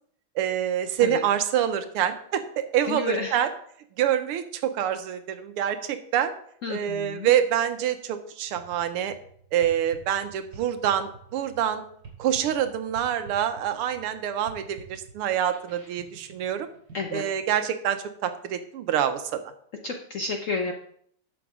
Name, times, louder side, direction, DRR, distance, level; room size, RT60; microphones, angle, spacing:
voice 1, 0.3-3.5 4.0-6.3 6.7-9.1 9.5-11.8 12.2-16.7 17.1-19.4, right 10 dB, 90° right, 9 dB, 1.7 m, -26 dB
voice 2, 2.9-3.4 6.6-7.3 16.9-17.2 19.8-20.7, left 4 dB, 60° left, 3 dB, 0.8 m, -31 dB
sound 1, 8.5-17.4, right 5 dB, 55° right, 3.8 m, -48 dB
11.0 x 7.1 x 3.6 m, 0.63 s
omnidirectional pair, 2.4 m